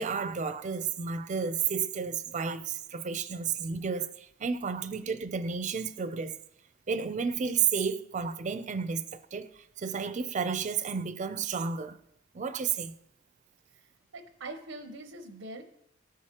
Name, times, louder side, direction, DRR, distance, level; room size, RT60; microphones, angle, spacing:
voice 1, 0.0-6.4 6.9-9.5 9.8-12.0 12.3-12.9, right 6 dB, 40° right, 0.4 m, -32 dB
voice 2, 14.1-15.6, right 2 dB, 85° right, 0.7 m, -42 dB
13.5 x 4.7 x 2.9 m
head